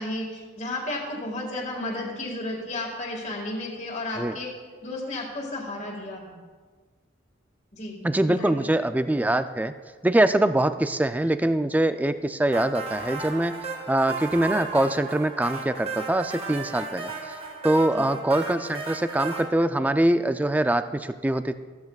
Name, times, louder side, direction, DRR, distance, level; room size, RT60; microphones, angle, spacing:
voice 1, 0.0-4.5 4.8-6.4 7.7-8.0 8.3-8.7 17.9-18.1, left 1 dB, 40° left, -2 dB, 1.8 m, -33 dB
voice 2, 8.0-9.7 10.0-13.6 13.9-17.1 17.6-21.5, right 1 dB, 10° right, 10 dB, 0.3 m, -23 dB
sound 1, 12.5-19.4, right 3 dB, 35° right, 1.5 m, -35 dB
15.0 x 13.5 x 2.4 m, 1.5 s
head